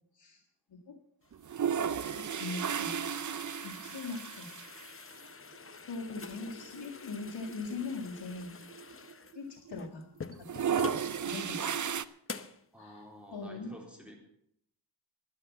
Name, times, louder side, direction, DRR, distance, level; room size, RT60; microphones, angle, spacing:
sound 1, 1.3-11.1 11.6-11.7 12.3-12.6, left 5 dB, 30° left, 0.8 m, -47 dB
sound 2, 1.3-4.9 5.2-5.3 5.5-5.6 6.6-6.8 7.2-7.3 7.5-9.4 9.7-10.0 10.3-12.0, right 8 dB, 45° right, 0.6 m, -34 dB
voice 1, 2.1-3.0 3.6-4.5 5.9-8.6 9.3-10.0 11.2-11.8 12.8-13.1 13.3-13.7, left 3 dB, 65° left, -3 dB, 1.9 m, -40 dB
voice 2, 12.7-14.2, equal, 5° right, 0 dB, 3.7 m, -50 dB
11.5 x 11.0 x 7.2 m, 0.72 s
wide cardioid pair, 110°, 44 cm